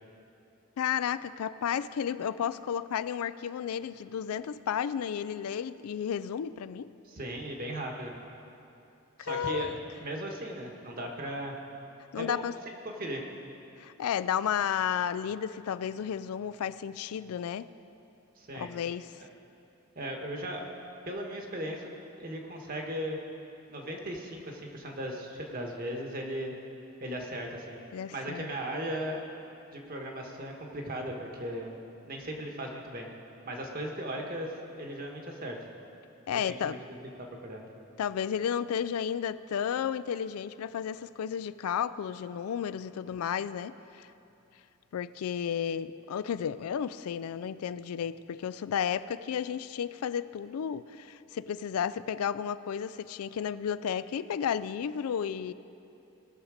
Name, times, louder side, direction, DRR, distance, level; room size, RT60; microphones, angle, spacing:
voice 1, 0.8-6.9 9.2-9.8 12.1-12.5 13.8-17.7 18.5-19.1 27.9-28.5 36.3-36.8 38.0-44.1 44.9-55.5, left 8 dB, 90° left, 15 dB, 0.3 m, -32 dB
voice 2, 7.0-8.1 9.2-9.7 10.0-11.5 12.2-12.5 13.0-13.2 18.4-18.7 19.2-19.3 19.9-20.6 21.1-21.9 22.2-23.2 23.7-26.5 27.0-27.8 28.1-29.2 29.7-31.7 32.1-33.1 33.4-34.5 34.8-35.6 36.5-37.0 37.4-37.7, right 1 dB, 40° right, 1 dB, 1.3 m, -37 dB
19.0 x 6.5 x 4.9 m, 2.8 s
head